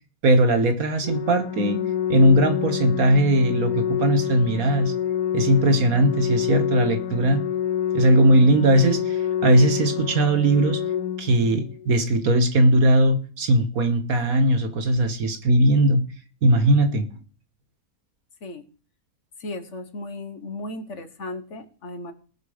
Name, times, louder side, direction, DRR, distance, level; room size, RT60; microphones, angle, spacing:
voice 1, 0.2-1.8 2.1-4.9 5.3-7.4 7.9-10.8 11.2-16.0 16.4-17.2, right 1 dB, 65° right, 9 dB, 1.8 m, -19 dB
Organ, 1.0-12.0, left 10 dB, 70° left, 1.2 m, -27 dB
voice 2, 19.4-22.1, left 2 dB, 50° left, 9 dB, 1.6 m, -35 dB
19.0 x 6.6 x 5.1 m, 0.39 s
omnidirectional pair, 1.7 m